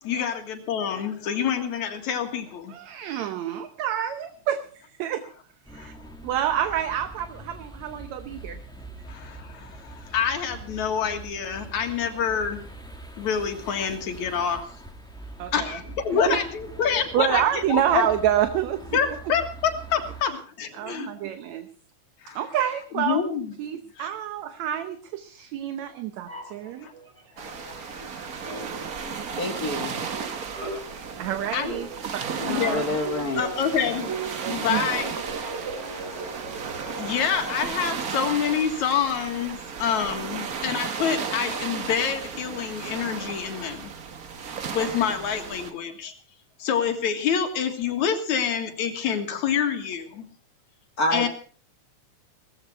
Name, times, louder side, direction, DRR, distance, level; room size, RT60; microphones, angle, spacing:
voice 1, 0.0-2.7 5.7-5.9 9.1-12.6 13.2-14.7 15.5-18.1 18.9-21.1 22.2-22.5 22.9-23.5 24.0-24.1 26.8-26.9 27.5-28.4 31.5-31.8 32.4-33.0 33.4-36.4 37.0-43.9 44.7-46.1 46.6-50.3 51.1-51.3, left 7 dB, 75° left, 6 dB, 3.1 m, -27 dB
voice 2, 2.7-4.6 5.0-5.2 5.7-5.9 6.2-8.6 15.4-15.8 16.3-16.4 17.1-19.0 20.8-21.7 22.4-23.2 23.6-26.9 31.2-32.8 34.5-34.8, right 11 dB, 75° right, 9 dB, 2.1 m, -28 dB
sound 1, 5.6-20.2, right 2 dB, ahead, 1.4 m, -43 dB
sound 2, 26.3-28.1 28.4-37.9, right 3 dB, 20° right, 4.1 m, -39 dB
sound 3, 27.4-45.7, right 6 dB, 55° right, 1.0 m, -34 dB
voice 3, 29.1-30.0 32.4-33.4 51.0-51.3, left 1 dB, 40° left, 5 dB, 1.5 m, -28 dB
18.0 x 14.5 x 4.5 m, 0.40 s
omnidirectional pair, 3.4 m